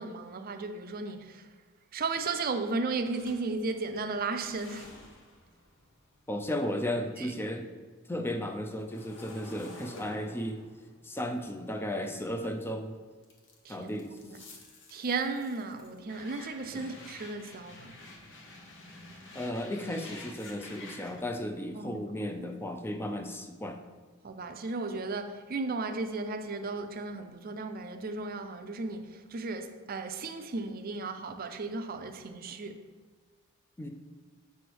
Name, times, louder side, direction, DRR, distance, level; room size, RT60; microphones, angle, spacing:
voice 1, 0.0-1.4 1.9-4.9 7.2-7.3 13.6-13.9 14.2-14.4 14.9-17.9 21.7-22.0 24.2-32.8, right 3 dB, 45° right, 0.5 m, -35 dB
sound 1, 3.1-7.4 7.7-12.7 13.2-21.2, left 2 dB, 60° left, 1.1 m, -51 dB
voice 2, 6.3-7.7 8.1-10.6 11.0-13.0 13.7-14.5 16.7-16.9 19.3-23.8 33.8-33.9, left 1 dB, 10° left, 0.5 m, -35 dB
6.8 x 3.3 x 6.1 m
head